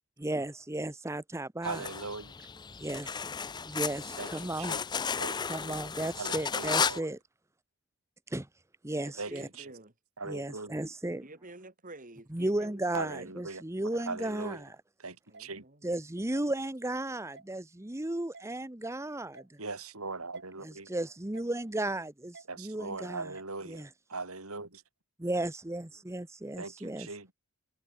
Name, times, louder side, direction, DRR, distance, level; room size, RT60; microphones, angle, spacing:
voice 1, 0.2-1.8 2.8-3.2 3.7-4.8 5.5-7.2 8.3-8.5 8.8-9.5 10.3-11.2 12.3-14.7 15.8-19.4 20.6-23.3 23.7-23.9 25.2-27.1, right 1 dB, 15° right, 0.8 m, -34 dB
sound 1, 1.6-7.0, left 6 dB, 20° left, 0.5 m, -34 dB
voice 2, 1.6-2.3 4.2-4.9 5.2-5.4 5.6-5.7 6.2-7.1 9.2-9.7 10.2-10.7 12.9-14.6 15.0-15.6 19.6-20.9 22.5-24.8 26.6-27.3, right 3 dB, 80° right, 4.9 m, -40 dB
voice 3, 8.9-9.9 11.1-13.3 15.3-15.9, right 2 dB, 40° right, 3.3 m, -50 dB
sound 2, 15.3-15.5 16.3-16.5 17.3-17.5 18.3-18.5 19.3-19.5 20.3-20.5 21.3-21.5 22.3-22.5 23.3-23.5, right 4 dB, 55° right, 4.7 m, -51 dB
head